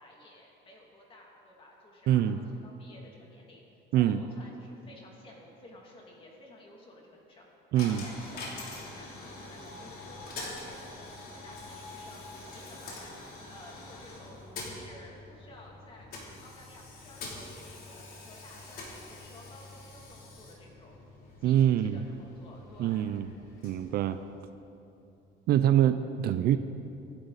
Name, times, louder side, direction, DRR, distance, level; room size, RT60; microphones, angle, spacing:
voice 1, 0.0-2.3 2.6-3.6 3.9-7.5 7.8-10.2 10.5-12.2 12.5-16.1 16.4-20.9 21.4-23.1, left 1 dB, 25° left, -2 dB, 2.8 m, -53 dB
voice 2, 2.1-2.4 3.9-4.2 7.7-8.1 21.4-22.0 22.8-23.3 23.6-24.2 25.5-26.6, right 11 dB, 50° right, 11 dB, 0.5 m, -24 dB
Coin (dropping), 7.7-24.7, left 2 dB, 45° left, 3.2 m, -45 dB
26.0 x 11.5 x 4.1 m, 2.9 s
cardioid pair, 170°, 21 cm